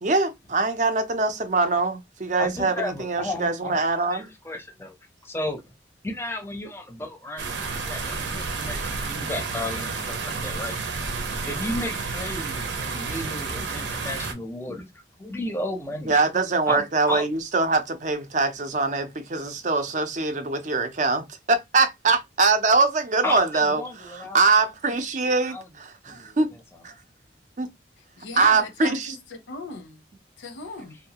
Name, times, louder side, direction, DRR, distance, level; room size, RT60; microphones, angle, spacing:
voice 1, 0.0-4.3 16.1-26.5 26.8-26.9 27.6-27.7 28.4-29.1, right 3 dB, 40° right, 0.5 m, -23 dB
voice 2, 2.4-4.9 5.2-5.6 6.0-10.7 11.4-14.9 15.2-16.1 16.7-17.2 23.2-24.4 25.5-25.7 26.1-26.4, left 1 dB, 15° left, 0.5 m, -33 dB
sound 1, 7.4-14.3, right 4 dB, 80° right, 0.7 m, -30 dB
voice 3, 28.2-30.0 30.4-31.0, left 3 dB, 85° left, 0.7 m, -38 dB
2.7 x 2.2 x 2.8 m
head